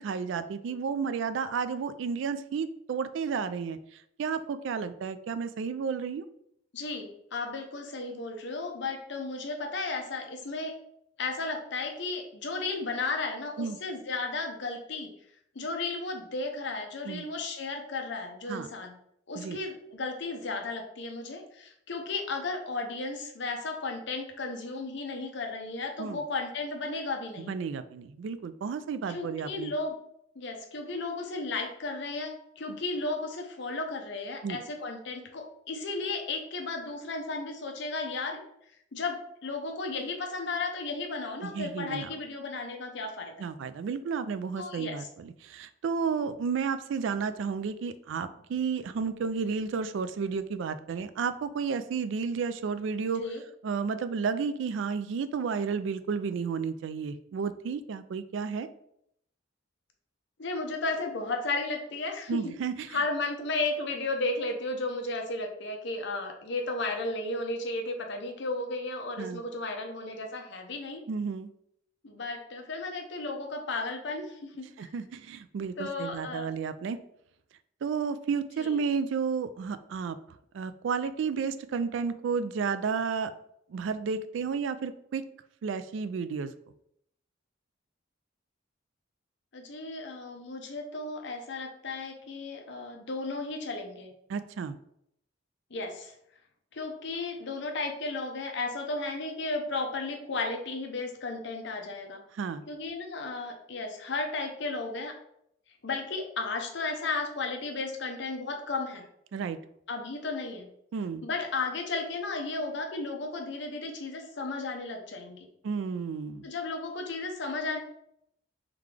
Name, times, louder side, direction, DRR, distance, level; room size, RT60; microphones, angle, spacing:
voice 1, 0.0-6.2 13.6-13.8 17.1-17.2 18.5-18.7 19.4-19.6 26.0-26.2 27.4-29.7 32.7-32.8 34.4-34.6 41.4-42.1 43.4-53.2 53.6-58.7 62.3-63.0 69.2-69.4 71.1-71.5 74.8-77.0 77.8-80.2 80.5-83.3 83.7-85.2 85.6-86.5 94.3-94.7 102.3-102.6 109.3-109.6 110.9-111.2 115.6-116.5, right 5 dB, 65° right, 13 dB, 0.3 m, -32 dB
voice 2, 6.7-10.7 11.2-15.1 15.5-18.9 19.3-27.6 29.1-29.9 30.4-38.4 38.9-43.5 44.6-45.1 53.2-53.4 60.4-62.5 62.9-71.0 72.0-74.9 75.8-76.5 78.6-78.7 89.5-94.1 95.7-96.1 96.7-102.2 102.7-105.2 105.8-109.1 109.9-110.7 111.2-115.4 116.4-117.8, left 3 dB, 60° left, 3 dB, 0.7 m, -34 dB
3.7 x 3.5 x 3.2 m, 0.73 s
head